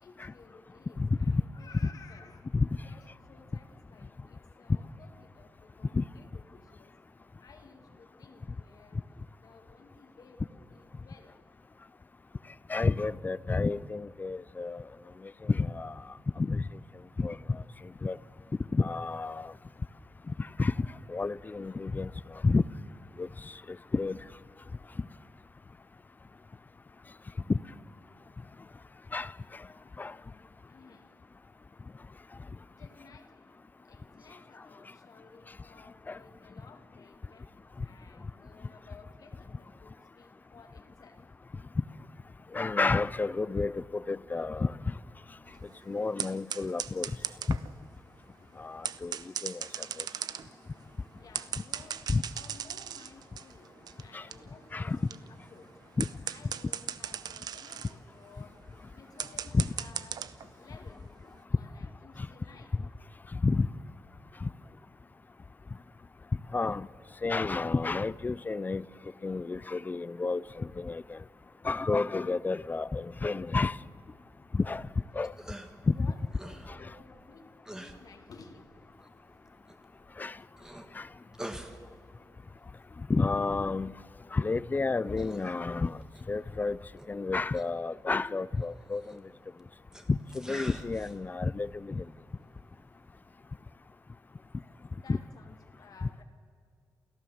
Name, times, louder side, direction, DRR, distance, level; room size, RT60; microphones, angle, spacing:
voice 1, 0.0-2.5 2.8-7.0 7.4-9.0 9.4-11.4 19.8-19.9 29.5-31.1 32.7-33.5 33.8-41.2 51.2-52.0 52.3-53.7 54.0-55.7 56.3-58.6 58.9-60.2 60.6-62.7 75.9-78.7 80.4-80.7 94.9-96.2, left 4 dB, 65° left, 2.1 m, -56 dB
voice 2, 1.0-1.4 2.5-2.7 5.9-6.0 12.7-14.8 15.4-15.9 16.4-16.6 17.2-18.2 18.7-19.5 20.3-20.7 21.1-22.6 23.2-23.3 23.7-24.2 27.5-27.6 29.1-29.6 30.0-30.1 36.1-36.2 42.5-44.9 45.9-47.1 47.5-47.6 48.6-49.2 49.4-49.7 50.0-50.1 52.1-52.2 54.1-54.2 54.7-55.0 56.0-56.1 59.5-59.7 63.3-63.7 64.4-64.5 66.5-66.9 67.2-68.9 69.2-71.2 71.6-73.8 74.5-74.8 75.1-75.3 75.9-76.1 76.7-76.9 80.2-80.4 80.9-81.1 83.1-83.9 84.3-86.0 86.3-86.8 87.1-89.2 90.1-92.0 95.1-95.2 96.0-96.1, left 3 dB, 25° left, 0.4 m, -30 dB
sound 1, 45.5-47.8 48.7-60.5 60.9-61.4, right 9 dB, 85° right, 0.7 m, -39 dB
sound 2, 74.6-93.3, right 1 dB, 10° right, 1.6 m, -50 dB
28.0 x 14.5 x 7.3 m
cardioid pair, 100°, 7 cm